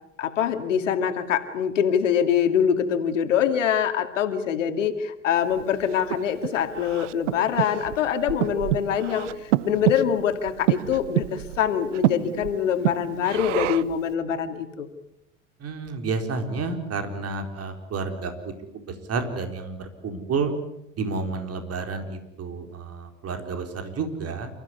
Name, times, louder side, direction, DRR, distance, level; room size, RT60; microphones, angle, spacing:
voice 1, 0.2-14.9, left 8 dB, 80° left, 7 dB, 2.4 m, -24 dB
Breathing, 5.5-14.0, right 16 dB, 75° right, 0.8 m, -28 dB
voice 2, 15.6-18.3 18.7-20.5 21.0-24.5, right 4 dB, 40° right, 6 dB, 4.4 m, -30 dB
29.5 x 15.0 x 9.7 m, 0.84 s
hypercardioid pair, 70°, 37 cm